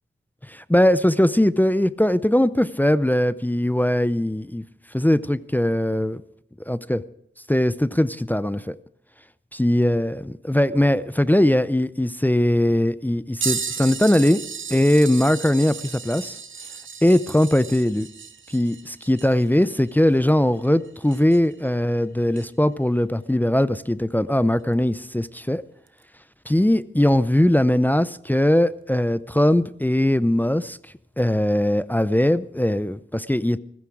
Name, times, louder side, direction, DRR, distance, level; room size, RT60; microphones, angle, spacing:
voice 1, 0.5-4.6 4.9-6.2 6.7-7.0 7.5-8.8 9.5-14.4 14.7-16.4 17.0-18.1 18.5-25.6 26.5-30.8 31.2-33.6, left 1 dB, 10° left, 16 dB, 0.5 m, -20 dB
sound 1, 13.4-21.6 22.3-22.5 24.7-24.8 25.9-26.0 27.1-27.2, right 6 dB, 75° right, 1.0 m, -34 dB
15.5 x 14.5 x 4.8 m, 0.75 s
wide cardioid pair, 65°, 21 cm